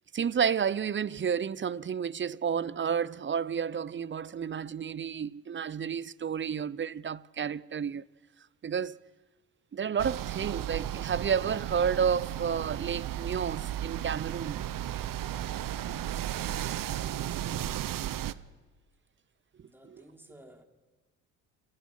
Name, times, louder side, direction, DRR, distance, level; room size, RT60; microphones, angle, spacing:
voice 1, 0.1-8.0 8.6-9.0 9.7-14.6, right 7 dB, 30° right, 0.7 m, -31 dB
sound 1, 10.0-18.3, right 12 dB, 50° right, 1.0 m, -34 dB
voice 2, 19.6-20.6, right 1 dB, 5° right, 3.6 m, -54 dB
29.5 x 17.5 x 5.6 m
hypercardioid pair, 60°, 41 cm